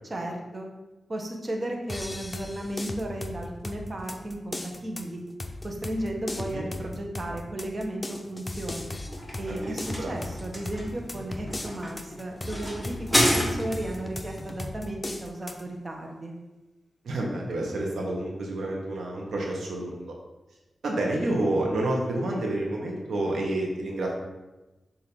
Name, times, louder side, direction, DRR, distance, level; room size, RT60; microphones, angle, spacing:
voice 1, 0.0-0.7 1.1-5.2 5.6-8.9 9.4-16.3, right 1 dB, 40° right, 1 dB, 1.1 m, -34 dB
sound 1, 1.9-15.6, left 2 dB, 25° left, 0.7 m, -38 dB
voice 2, 6.3-6.6 9.5-10.1 17.0-20.1 20.8-24.1, right 1 dB, 80° right, -1 dB, 1.1 m, -29 dB
sound 2, 8.9-14.0, equal, ahead, 1.6 m, -29 dB
7.0 x 2.8 x 5.2 m, 1.1 s
cardioid pair, 60°, 0 cm